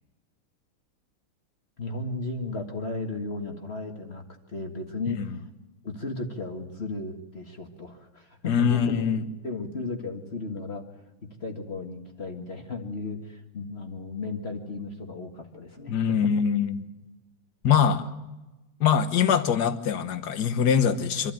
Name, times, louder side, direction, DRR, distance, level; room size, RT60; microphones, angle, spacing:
voice 1, 1.8-4.2 4.5-5.2 5.8-9.1 9.4-10.8 11.2-16.3, left 3 dB, 35° left, 4 dB, 1.7 m, -35 dB
voice 2, 8.5-9.2 15.9-16.8 17.6-18.1 18.8-21.3, left 7 dB, 55° left, 11 dB, 1.6 m, -23 dB
25.0 x 12.5 x 9.1 m, 1.1 s
omnidirectional pair, 2.2 m